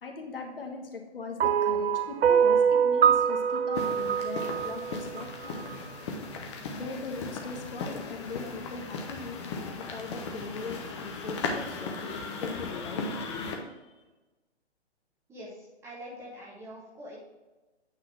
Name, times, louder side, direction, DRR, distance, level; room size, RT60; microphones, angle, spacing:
voice 1, 0.0-5.7 6.7-13.1 13.8-14.0, left 4 dB, 55° left, 3 dB, 1.4 m, -40 dB
sound 1, 1.4-5.7, right 7 dB, 70° right, 0.5 m, -24 dB
sound 2, 3.7-13.6, left 3 dB, 25° left, 0.9 m, -37 dB
voice 2, 15.3-17.2, equal, 10° right, -4 dB, 1.0 m, -44 dB
8.9 x 4.0 x 4.7 m, 1.2 s
figure-of-eight pair, 130°, 33 cm